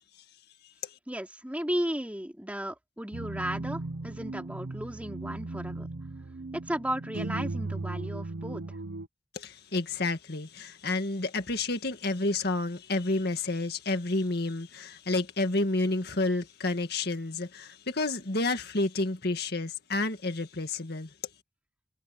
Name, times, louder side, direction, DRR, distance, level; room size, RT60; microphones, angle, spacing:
voice 1, 1.1-5.9 6.7-8.6, right 1 dB, 10° right, 3.0 m, -34 dB
sound 1, 3.1-9.1, right 2 dB, 65° right, 0.8 m, -37 dB
voice 2, 9.3-21.1, left 2 dB, 60° left, 2.0 m, -30 dB
head